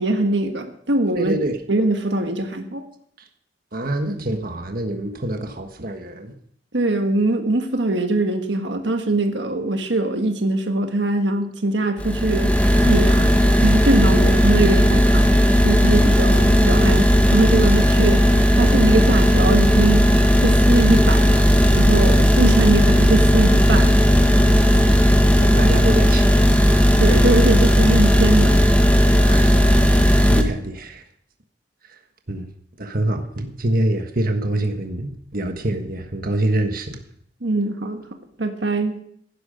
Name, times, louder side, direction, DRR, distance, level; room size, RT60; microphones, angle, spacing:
voice 1, 0.0-1.3 1.7-2.8 6.7-12.5 12.8-13.3 13.6-15.3 15.6-18.2 18.6-20.1 20.4-21.4 21.7-23.9 27.0-28.6 37.4-38.0 38.4-39.0, right 2 dB, 75° right, 5 dB, 1.5 m, -22 dB
voice 2, 1.1-1.5 3.7-6.3 25.4-26.3 29.2-31.0 32.3-32.4 32.8-37.0, right 1 dB, 55° right, 5 dB, 1.5 m, -25 dB
sound 1, 12.0-30.4, equal, 10° left, 1.5 m, -15 dB
15.5 x 11.5 x 5.3 m, 0.67 s
head